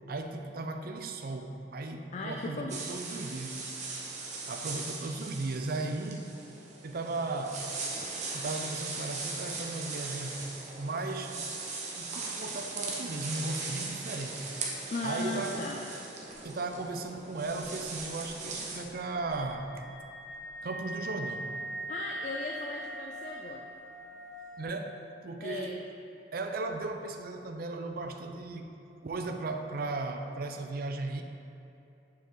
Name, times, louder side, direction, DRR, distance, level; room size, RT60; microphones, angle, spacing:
voice 1, 0.1-3.6 4.5-6.4 6.8-7.7 8.3-10.4 10.8-11.5 12.0-14.5 15.0-15.7 16.4-19.9 20.6-21.5 24.6-25.8 26.3-31.2, right 3 dB, 60° right, 6 dB, 0.5 m, -36 dB
voice 2, 2.1-2.8 14.9-15.8 21.9-23.7 25.4-25.8, left 3 dB, 40° left, 1 dB, 0.4 m, -37 dB
sound 1, 2.7-18.8, right 3 dB, 45° right, 1.0 m, -39 dB
sound 2, 16.3-16.8 17.0-17.1 17.4-24.6, right 1 dB, 25° right, 1.6 m, -42 dB
6.8 x 5.7 x 3.8 m, 2.8 s
head